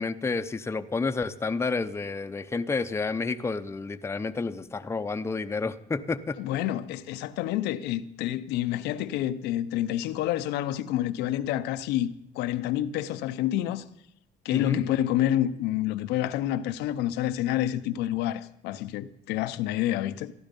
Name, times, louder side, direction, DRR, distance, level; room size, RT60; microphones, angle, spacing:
voice 1, 0.0-6.4 14.5-14.8, left 4 dB, 15° left, 0.6 m, -30 dB
voice 2, 6.4-13.8 14.4-20.3, left 12 dB, 90° left, 0.7 m, -28 dB
14.5 x 11.5 x 5.2 m
cardioid pair, 110°, 17 cm